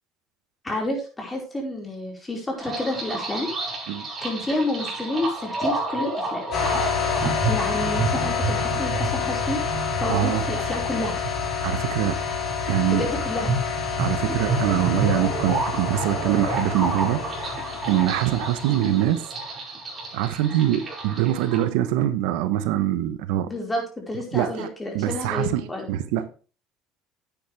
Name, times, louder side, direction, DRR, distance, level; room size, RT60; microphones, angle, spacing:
voice 1, 0.6-3.5 3.8-3.9 4.2-6.4 7.5-9.6 10.0-11.2 12.9-13.6 23.5-25.9, left 1 dB, 15° left, 4.7 m, -29 dB
sound 1, 2.6-21.6, right 3 dB, 25° right, 5.1 m, -30 dB
sound 2, 6.5-19.1, left 6 dB, 55° left, 4.0 m, -28 dB
voice 2, 10.1-10.5 11.6-12.2 12.6-13.1 14.0-17.6 17.9-19.3 20.1-23.5 24.3-24.7 24.9-26.3, right 12 dB, 85° right, 0.9 m, -24 dB
10.0 x 9.0 x 3.4 m
supercardioid pair, 110°, 0 cm